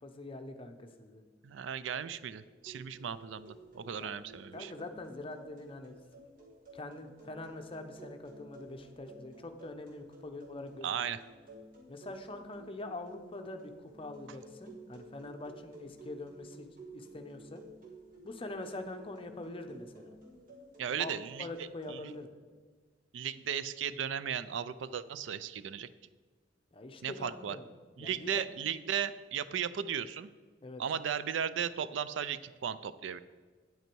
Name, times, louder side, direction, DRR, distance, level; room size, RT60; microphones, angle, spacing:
voice 1, 0.0-1.2 4.0-4.1 4.5-6.3 6.7-11.2 11.9-16.7 16.9-17.6 18.2-20.1 21.0-22.3 26.7-27.7 28.0-28.4 30.6-30.8, left 2 dB, 30° left, 6 dB, 0.7 m, -44 dB
voice 2, 1.4-4.7 10.8-11.2 20.8-21.5 21.9-22.1 23.1-25.9 27.0-27.6 28.0-30.3 30.8-33.2, right 8 dB, 75° right, 15 dB, 0.4 m, -36 dB
sound 1, 2.6-22.2, right 1 dB, 50° right, 1.8 m, -54 dB
9.0 x 8.0 x 4.5 m, 1.4 s
head